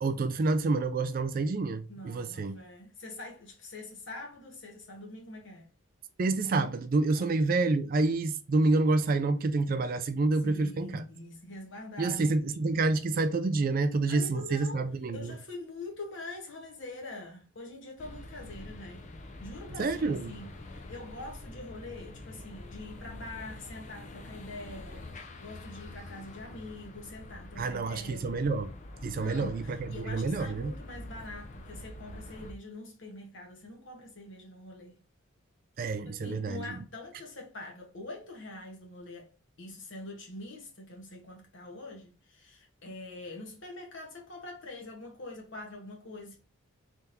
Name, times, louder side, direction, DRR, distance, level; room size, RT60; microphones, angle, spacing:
voice 1, 0.0-2.6 6.2-11.0 12.0-15.3 19.8-20.3 27.6-28.7 29.0-30.7 35.8-36.6, right 3 dB, 45° right, 0.3 m, -28 dB
voice 2, 1.9-5.7 7.2-7.3 10.4-12.3 14.1-19.1 19.4-28.5 29.2-35.0 36.0-39.3 39.6-46.4, left 2 dB, 60° left, 1.3 m, -44 dB
sound 1, 18.0-32.5, left 1 dB, 35° left, 0.5 m, -46 dB
3.7 x 3.4 x 2.7 m
head